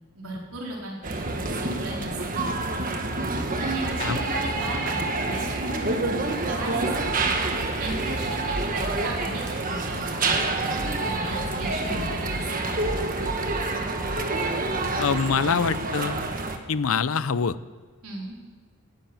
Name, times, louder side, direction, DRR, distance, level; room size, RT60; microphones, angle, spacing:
voice 1, 0.1-2.5 3.6-6.0 6.5-6.9 7.8-10.5 11.0-12.6 18.0-18.4, right 1 dB, 85° right, -2 dB, 4.2 m, -36 dB
sound 1, 1.0-16.6, right 2 dB, 40° right, 1.4 m, -27 dB
voice 2, 15.0-16.2 16.7-17.6, left 6 dB, 75° left, 16 dB, 0.6 m, -24 dB
14.5 x 10.5 x 9.2 m, 1.5 s
head